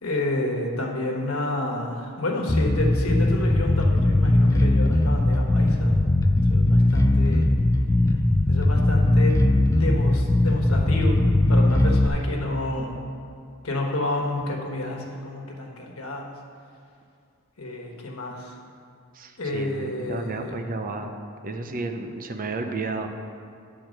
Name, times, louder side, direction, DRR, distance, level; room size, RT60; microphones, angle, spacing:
voice 1, 0.0-6.0 6.5-7.4 8.5-11.2 11.5-12.9 13.6-16.3 17.6-18.6 19.4-20.5, left 1 dB, 90° left, 0 dB, 1.3 m, -30 dB
Bass guitar, 2.5-12.1, left 1 dB, 15° left, 0.3 m, -19 dB
voice 2, 19.1-21.1 21.4-23.1, right 3 dB, 40° right, 6 dB, 0.6 m, -32 dB
10.5 x 4.5 x 6.4 m, 2.3 s
head